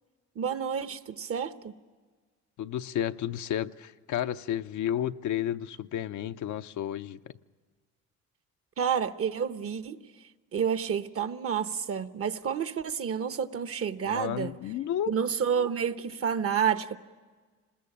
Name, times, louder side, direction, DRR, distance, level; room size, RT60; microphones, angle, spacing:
voice 1, 0.4-1.7 8.8-10.0 10.5-14.5 15.1-17.0, right 7 dB, 50° right, 1.0 m, -29 dB
voice 2, 2.6-7.3 14.0-15.1, left 11 dB, 75° left, 0.7 m, -32 dB
26.5 x 20.5 x 8.6 m
cardioid pair, 90°, 30 cm